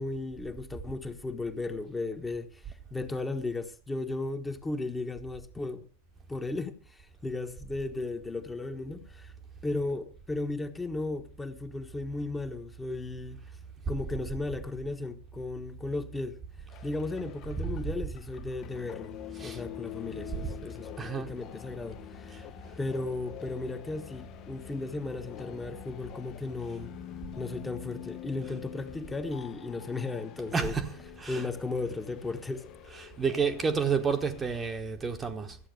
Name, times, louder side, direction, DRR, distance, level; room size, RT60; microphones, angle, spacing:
voice 1, 0.0-2.6 2.9-5.9 6.3-9.3 9.6-13.4 13.9-16.4 16.8-19.1 19.4-22.5 22.8-26.9 27.4-30.8 31.3-32.7, left 3 dB, 10° left, 1.3 m, -35 dB
sound 1, 16.7-34.8, left 13 dB, 35° left, 0.8 m, -46 dB
voice 2, 20.1-20.5 21.0-21.3 22.3-22.4 30.5-31.5 32.9-35.6, right 5 dB, 15° right, 1.1 m, -31 dB
14.0 x 8.4 x 6.6 m
figure-of-eight pair, 90°, 0 cm